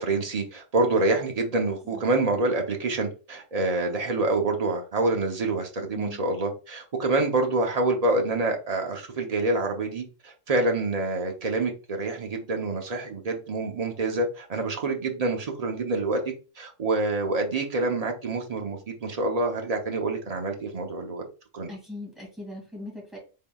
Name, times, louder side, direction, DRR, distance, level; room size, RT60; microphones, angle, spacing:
voice 1, 0.0-16.2 16.6-21.2 21.5-21.7, right 2 dB, 35° right, 2 dB, 0.7 m, -27 dB
voice 2, 21.7-23.2, left 2 dB, ahead, -3 dB, 2.0 m, -40 dB
3.9 x 3.7 x 2.3 m, 0.33 s
omnidirectional pair, 1.4 m